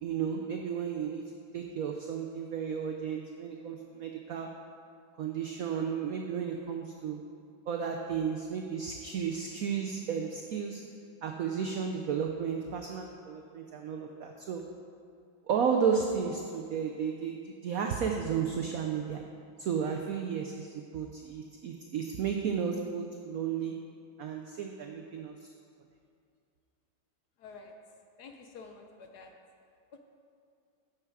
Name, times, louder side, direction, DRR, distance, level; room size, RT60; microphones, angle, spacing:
voice 1, 0.0-4.5 5.2-7.2 7.7-10.8 11.2-14.7 15.5-19.3 19.6-23.8 24.2-25.5, right 7 dB, 85° right, 3 dB, 0.7 m, -33 dB
voice 2, 27.4-27.7 28.2-29.3 29.9-30.0, left 4 dB, 65° left, 4 dB, 1.0 m, -49 dB
9.0 x 7.1 x 4.7 m, 2.4 s
omnidirectional pair, 2.2 m